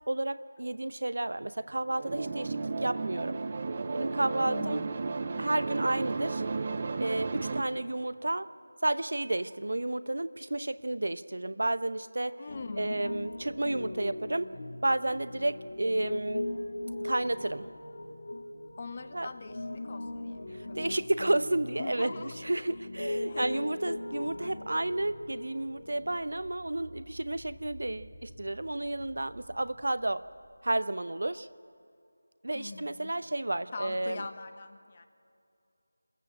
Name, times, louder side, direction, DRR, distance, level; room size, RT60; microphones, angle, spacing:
voice 1, 0.1-3.4 3.9-4.8 5.4-6.4 7.0-8.5 8.8-12.4 12.8-14.5 14.8-16.4 17.0-17.7 19.1-19.3 20.5-22.1 22.4-30.2 30.6-31.5 32.4-34.2, right 2 dB, 65° right, 14 dB, 0.8 m, -31 dB
sound 1, 1.9-7.6, right 4 dB, 35° right, 0.9 m, -33 dB
voice 2, 4.4-4.9 12.4-13.0 18.8-21.4 21.8-22.3 22.7-22.8 23.3-23.6 24.4-24.7 32.5-33.1 33.7-35.1, left 4 dB, 30° left, 8 dB, 1.1 m, -42 dB
Piano, 12.5-26.2, left 1 dB, 45° left, 2.2 m, -39 dB
sound 2, 24.3-31.4, equal, 5° left, 3.3 m, -53 dB
26.5 x 15.0 x 8.7 m, 2.5 s
figure-of-eight pair, 170°, 0 cm